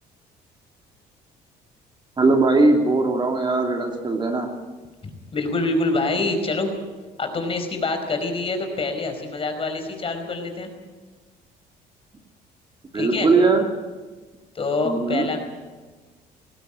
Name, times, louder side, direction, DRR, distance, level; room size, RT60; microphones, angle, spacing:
voice 1, 2.2-4.5 12.9-13.6 14.8-15.3, right 3 dB, 25° right, 3 dB, 2.7 m, -19 dB
voice 2, 5.0-6.7 7.2-10.7 12.9-13.3 14.5-15.4, left 3 dB, 35° left, 6 dB, 4.9 m, -26 dB
19.5 x 17.0 x 8.9 m, 1.3 s
cardioid pair, 110°, 17 cm